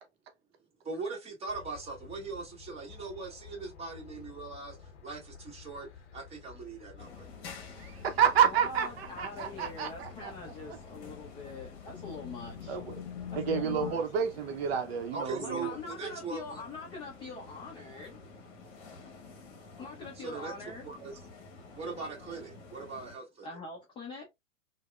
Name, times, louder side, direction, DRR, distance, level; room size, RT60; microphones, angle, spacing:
voice 1, 0.8-4.8 5.0-5.9 6.1-7.3 15.1-16.6 20.2-20.5 20.8-21.1 21.7-23.5, right 4 dB, 15° right, 1.1 m, -40 dB
sound 1, 1.5-14.0, left 8 dB, 60° left, 0.6 m, -47 dB
sound 2, 7.0-23.2, left 4 dB, 35° left, 0.9 m, -50 dB
voice 2, 7.8-10.3 10.7-10.8 12.7-13.0 13.3-15.7, right 8 dB, 55° right, 0.6 m, -29 dB
voice 3, 8.4-12.8 13.3-14.0 15.4-18.2 19.8-20.9 23.4-24.3, left 4 dB, 15° left, 0.4 m, -43 dB
3.3 x 2.0 x 2.2 m
hypercardioid pair, 115°, 38 cm